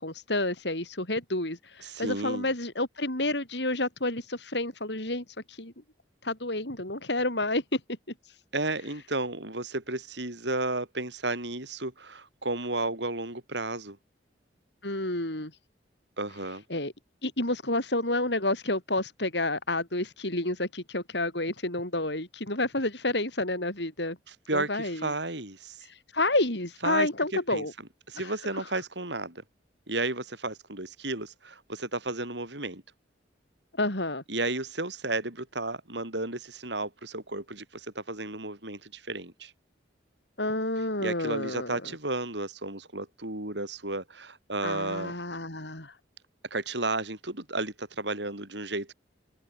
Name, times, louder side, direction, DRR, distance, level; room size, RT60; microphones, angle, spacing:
voice 1, 0.0-5.7 6.2-7.8 14.8-15.5 16.7-16.9 17.2-24.2 24.5-25.1 25.8-27.7 28.2-28.6 33.8-34.2 40.4-41.8 44.6-45.9, left 2 dB, 65° left, 7.5 m, -30 dB
voice 2, 1.8-2.5 8.5-14.0 16.2-16.6 24.3-25.9 26.8-27.1 27.5-27.7 28.1-29.4 29.9-32.8 34.3-39.5 41.0-45.1 46.5-48.9, right 2 dB, 70° right, 5.8 m, -33 dB
head